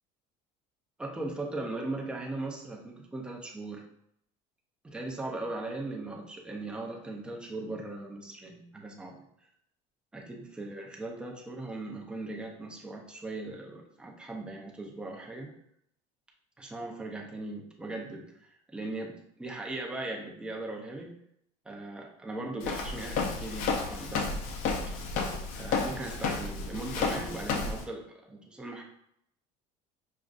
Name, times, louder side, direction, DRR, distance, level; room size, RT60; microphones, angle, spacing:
voice 1, 1.0-3.9 4.8-9.2 10.1-15.5 16.6-21.1 21.7-24.3 25.6-28.8, right 2 dB, 5° right, -1 dB, 0.5 m, -39 dB
Walk footsteps, 22.6-27.8, left 4 dB, 55° left, 0.6 m, -32 dB
6.0 x 2.4 x 2.4 m, 0.73 s
cardioid pair, 170°, 16 cm